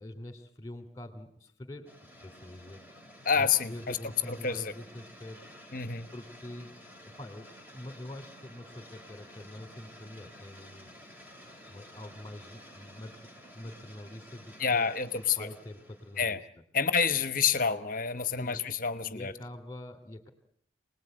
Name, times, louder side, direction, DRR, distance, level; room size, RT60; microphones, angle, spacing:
voice 1, 0.0-1.9 2.2-2.8 3.3-5.5 6.1-6.8 7.0-10.9 11.7-14.9 15.2-16.4 18.4-18.6 19.0-20.3, left 1 dB, 15° left, 8 dB, 2.9 m, -45 dB
sound 1, 1.9-16.3, equal, 10° right, 2.8 m, -52 dB
voice 2, 3.2-4.0 4.3-4.7 5.7-6.1 14.6-15.5 16.2-16.4 16.7-19.3, left 6 dB, 45° left, 13 dB, 1.1 m, -28 dB
28.5 x 20.0 x 9.1 m, 0.70 s
head